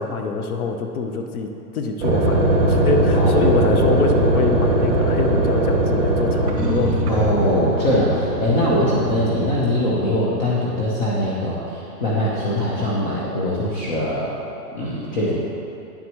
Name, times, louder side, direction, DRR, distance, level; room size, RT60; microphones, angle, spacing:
voice 1, 0.0-7.3, left 4 dB, 60° left, 4 dB, 0.9 m, -25 dB
sound 1, 2.0-9.5, right 1 dB, 35° right, 1.9 m, -20 dB
voice 2, 7.1-14.3 14.7-15.4, left 1 dB, 30° left, -6 dB, 0.9 m, -22 dB
10.0 x 7.8 x 3.1 m, 2.6 s
hypercardioid pair, 160°, 48 cm